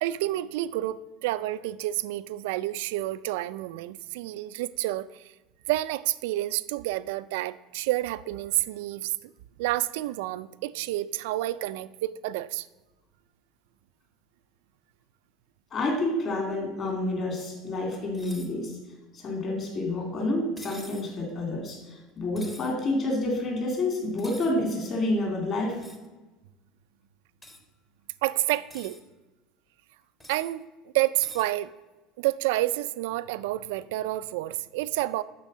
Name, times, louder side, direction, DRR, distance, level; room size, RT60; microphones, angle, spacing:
voice 1, 0.0-5.3 5.7-9.3 9.6-12.7 28.2-29.0 30.3-30.7 30.9-31.7 32.2-35.2, right 16 dB, 85° right, 15 dB, 0.4 m, -29 dB
voice 2, 15.7-18.8 19.1-25.8, left 2 dB, 30° left, 1 dB, 2.5 m, -29 dB
sound 1, 18.1-18.5 20.6-21.1 22.4-22.7 24.2-24.5 25.8-26.1 27.4-27.6 28.5-29.0 30.2-30.5 31.2-31.5, left 1 dB, 10° left, 0.9 m, -46 dB
12.0 x 4.5 x 6.2 m, 1.1 s
cardioid pair, 170°, 0 cm